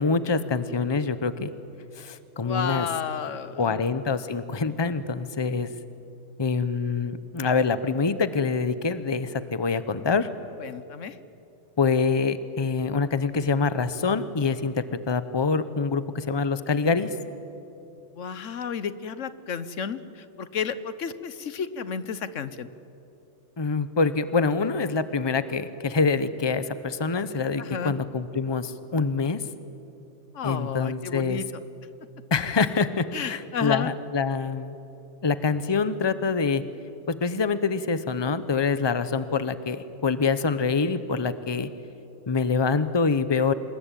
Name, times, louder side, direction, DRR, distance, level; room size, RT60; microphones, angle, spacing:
voice 1, 0.0-1.5 2.0-2.9 3.6-5.7 6.4-10.3 11.8-17.1 23.6-29.4 30.4-31.4 32.3-34.7 35.2-36.6 37.1-41.7 42.3-43.5, left 4 dB, 25° left, 13 dB, 0.9 m, -25 dB
voice 2, 2.4-3.8 10.6-11.2 18.1-22.7 27.6-28.0 30.3-31.5 33.1-33.9, left 7 dB, 85° left, 14 dB, 1.3 m, -32 dB
27.0 x 21.0 x 9.2 m, 2.8 s
omnidirectional pair, 1.3 m